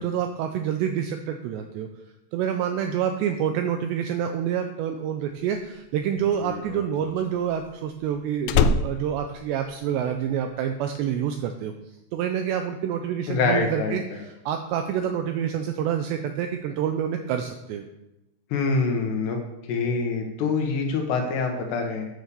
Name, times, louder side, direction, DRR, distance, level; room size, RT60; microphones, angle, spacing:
voice 1, 0.0-1.9 2.3-11.7 12.1-17.9, right 9 dB, 85° right, 6 dB, 2.5 m, -27 dB
Slam, 5.5-10.3 10.6-11.0, left 5 dB, 85° left, 3.1 m, -27 dB
voice 2, 13.3-14.2 18.5-19.4 19.7-22.1, left 4 dB, 70° left, 3 dB, 3.0 m, -25 dB
9.8 x 6.4 x 6.9 m, 0.92 s
omnidirectional pair, 5.6 m